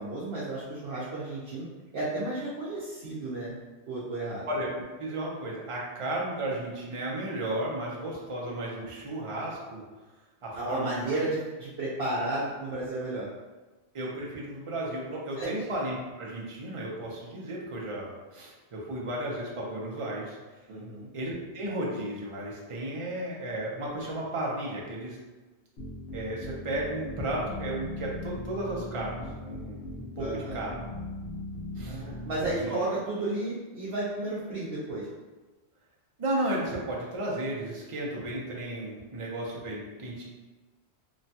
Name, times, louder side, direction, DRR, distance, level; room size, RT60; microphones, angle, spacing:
voice 1, 0.0-1.7 1.9-3.5 3.8-4.5 10.5-13.3 15.4-15.5 20.7-21.1 30.2-30.6 31.9-35.1, right 2 dB, 70° right, -8 dB, 0.9 m, -33 dB
voice 2, 4.5-9.8 10.4-11.1 13.9-20.4 21.1-25.2 26.1-30.7 31.8-32.0 32.6-32.8 36.2-40.2, right 1 dB, 40° right, -3 dB, 0.5 m, -34 dB
sound 1, 25.8-32.6, left 1 dB, 85° left, 1.2 m, -39 dB
3.0 x 2.2 x 2.7 m, 1.2 s
omnidirectional pair, 1.1 m